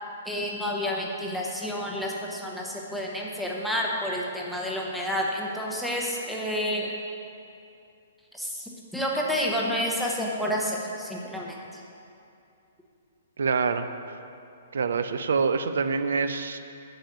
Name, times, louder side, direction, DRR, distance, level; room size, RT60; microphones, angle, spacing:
voice 1, 0.2-6.9 8.3-11.8, equal, ahead, -3 dB, 0.8 m, -30 dB
voice 2, 13.4-13.9 14.7-16.6, right 5 dB, 85° right, 10 dB, 0.6 m, -25 dB
10.5 x 4.9 x 8.0 m, 2.6 s
hypercardioid pair, 175°, 0 cm